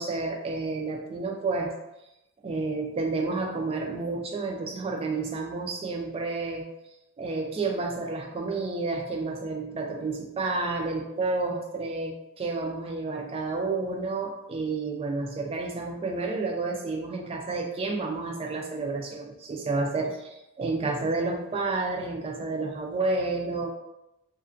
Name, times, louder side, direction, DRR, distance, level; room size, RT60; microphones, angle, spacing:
voice 1, 0.0-1.7 2.4-6.7 7.2-23.7, right 3 dB, 25° right, 2 dB, 0.3 m, -30 dB
2.4 x 2.1 x 2.5 m, 0.90 s
head